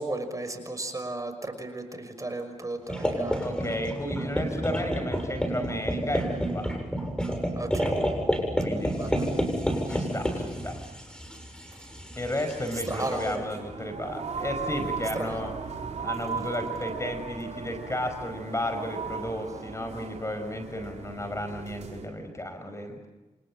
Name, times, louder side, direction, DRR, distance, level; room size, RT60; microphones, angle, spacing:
voice 1, 0.0-3.5 7.6-7.9 8.9-9.3 12.9-13.4 15.1-15.5, right 2 dB, 25° right, 7 dB, 5.9 m, -34 dB
sound 1, 2.9-13.3, equal, 5° left, 7.5 m, -30 dB
voice 2, 3.4-6.7 8.6-9.2 9.9-10.8 12.2-15.5 16.0-23.0, left 1 dB, 25° left, 7 dB, 5.5 m, -33 dB
sound 2, 13.2-22.1, right 5 dB, 65° right, 4.2 m, -37 dB
29.0 x 26.5 x 7.5 m, 1.1 s
cardioid pair, 55°, 12 cm